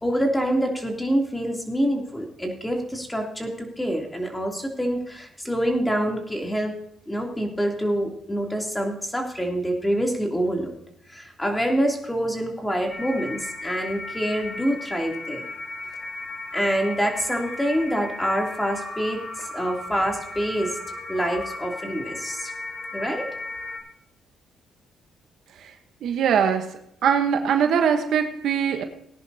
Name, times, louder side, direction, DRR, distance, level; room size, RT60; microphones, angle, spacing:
voice 1, 0.0-6.7 7.1-10.7 11.1-15.4 16.5-20.7 21.1-22.5 22.9-23.3, equal, 10° left, 1 dB, 2.9 m, -26 dB
sound 1, 12.9-23.8, left 2 dB, 35° left, 3.5 m, -36 dB
voice 2, 26.0-26.7 27.0-28.8, right 7 dB, 75° right, 6 dB, 1.1 m, -21 dB
18.5 x 10.5 x 2.8 m, 0.72 s
cardioid pair, 90°, 0 cm